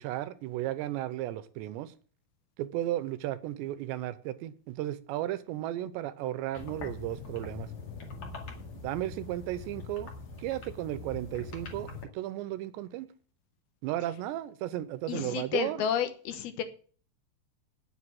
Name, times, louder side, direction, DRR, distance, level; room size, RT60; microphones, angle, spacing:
voice 1, 0.0-1.9 2.6-7.7 8.8-10.1 10.4-13.1 13.8-15.8, right 14 dB, 90° right, 14 dB, 3.0 m, -34 dB
sound 1, 6.5-12.0, left 4 dB, 40° left, 2.4 m, -43 dB
voice 2, 15.1-16.6, left 8 dB, 70° left, 10 dB, 2.6 m, -31 dB
9.8 x 7.6 x 7.8 m, 0.42 s
omnidirectional pair, 5.0 m